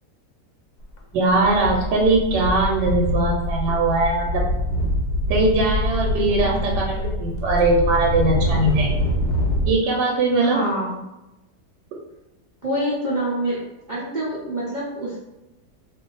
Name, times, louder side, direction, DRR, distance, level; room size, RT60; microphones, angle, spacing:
sound 1, 0.8-1.0 1.3-9.7, equal, 75° left, 1.2 m, -24 dB
voice 1, 1.1-4.5 5.3-8.9 9.7-10.6, right 2 dB, 85° right, -1 dB, 1.3 m, -20 dB
voice 2, 6.4-6.8 10.4-11.0 12.6-13.6 13.9-15.2, right 1 dB, 70° right, -8 dB, 0.4 m, -26 dB
2.6 x 2.6 x 3.8 m, 0.97 s
omnidirectional pair, 1.8 m